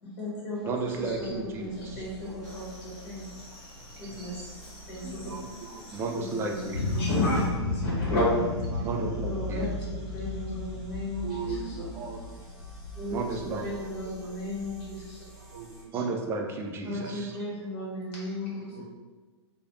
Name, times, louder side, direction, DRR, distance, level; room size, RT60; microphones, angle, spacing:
voice 1, 0.0-3.3 4.0-4.5 4.9-5.3 6.1-6.6 6.9-8.3 8.7-8.8 9.2-12.1 12.9-15.2 16.8-18.8, left 1 dB, 45° left, -6 dB, 1.4 m, -34 dB
sound 1, 0.5-15.8, right 2 dB, ahead, 0.7 m, -48 dB
voice 2, 0.7-2.0 5.9-6.8 8.8-9.7 13.1-13.7 15.9-17.3, right 3 dB, 15° right, 1 dB, 0.3 m, -33 dB
sound 2, 2.4-7.5, left 1 dB, 25° left, 1.1 m, -49 dB
voice 3, 4.0-4.4 5.0-6.0 8.7-9.0 11.2-12.2 14.2-14.3 15.4-16.0 16.9-17.2 18.7-18.8, right 5 dB, 55° right, 0 dB, 0.6 m, -40 dB
sound 3, 6.7-13.8, left 2 dB, 85° left, 0.5 m, -33 dB
3.1 x 2.2 x 2.6 m, 1.3 s
figure-of-eight pair, 105°, 15 cm